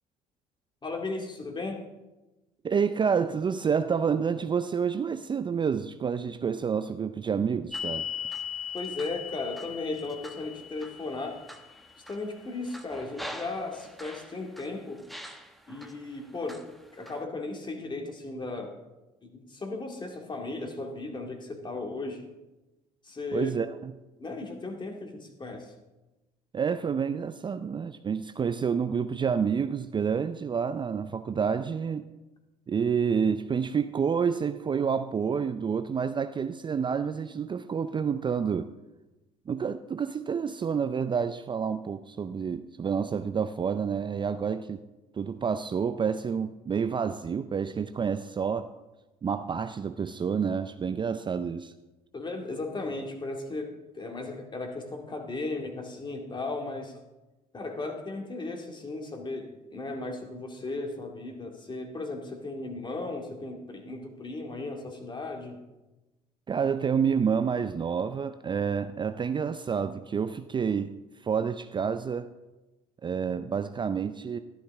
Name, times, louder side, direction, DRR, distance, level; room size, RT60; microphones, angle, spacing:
voice 1, 0.8-1.8 8.7-11.4 12.1-15.0 15.7-16.7 16.9-18.8 19.2-22.3 23.0-23.5 24.2-25.7 52.1-57.0 57.5-65.6, left 3 dB, 30° left, 2 dB, 2.2 m, -36 dB
voice 2, 2.6-8.1 23.3-23.9 26.5-32.1 32.7-38.7 39.5-44.8 45.1-48.7 49.2-51.7 66.5-70.9 71.2-72.3 73.0-74.4, right 6 dB, 30° right, 10 dB, 0.4 m, -29 dB
sound 1, 7.7-14.7 15.1-15.9 16.5-17.2, left 5 dB, ahead, 1.0 m, -40 dB
12.5 x 11.0 x 3.5 m, 1.1 s
supercardioid pair, 70°, 16 cm